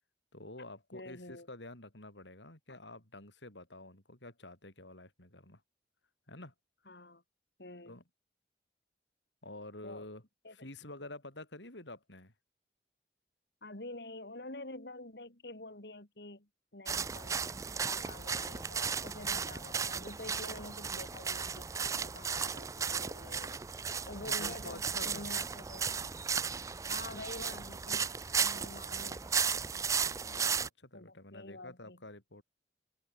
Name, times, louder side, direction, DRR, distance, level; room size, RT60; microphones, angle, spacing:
voice 1, 0.3-5.6 6.3-6.5 7.9-8.0 9.4-10.2 10.5-12.3 24.1-25.3 30.0-32.4, left 2 dB, 90° left, 5.8 m, -49 dB
voice 2, 0.9-1.5 2.7-2.8 6.9-7.2 7.6-8.0 9.8-10.1 10.4-10.5 13.6-21.7 22.0-23.6 24.0-25.9 26.9-28.1 28.4-29.8 30.9-32.0, left 2 dB, 70° left, 3.1 m, -48 dB
sound 1, 16.9-30.7, right 6 dB, 20° right, 0.3 m, -35 dB
open air
head